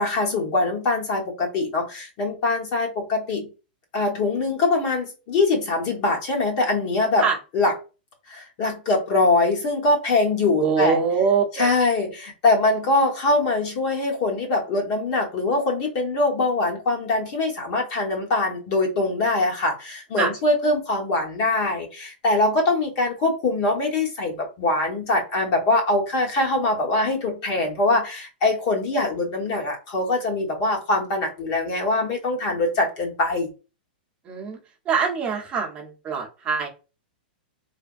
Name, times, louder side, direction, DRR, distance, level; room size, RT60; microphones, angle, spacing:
voice 1, 0.0-3.5 3.9-7.2 7.5-7.7 8.3-11.0 11.6-33.5, left 2 dB, 45° left, 1.1 m, -23 dB
voice 2, 10.6-11.7 20.2-20.3 34.2-34.6 34.9-36.7, right 6 dB, 20° right, 0.8 m, -23 dB
3.4 x 2.2 x 2.5 m
hypercardioid pair, 150°, 5 cm